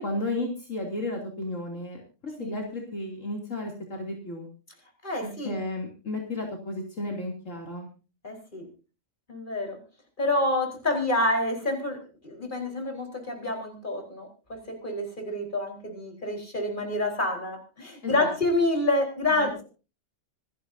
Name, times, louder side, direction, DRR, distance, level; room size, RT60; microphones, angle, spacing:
voice 1, 0.0-4.5 5.2-7.9 18.0-18.3 19.4-19.5, left 2 dB, 70° left, 1 dB, 3.4 m, -33 dB
voice 2, 5.0-5.6 8.2-8.7 9.3-9.8 10.2-14.3 14.8-19.6, left 2 dB, 35° left, 2 dB, 4.6 m, -28 dB
26.0 x 11.0 x 2.7 m, 0.33 s
omnidirectional pair, 1.4 m